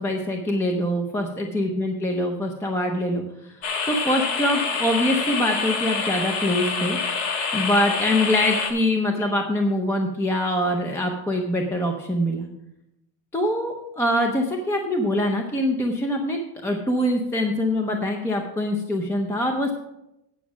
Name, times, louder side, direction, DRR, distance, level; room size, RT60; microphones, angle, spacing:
voice 1, 0.0-3.2 3.9-7.0 7.5-12.5 13.3-19.7, left 1 dB, 5° left, 3 dB, 0.5 m, -24 dB
sound 1, 3.6-8.7, left 5 dB, 60° left, 1.6 m, -26 dB
9.5 x 6.1 x 6.0 m, 0.83 s
cardioid pair, 170°, 47 cm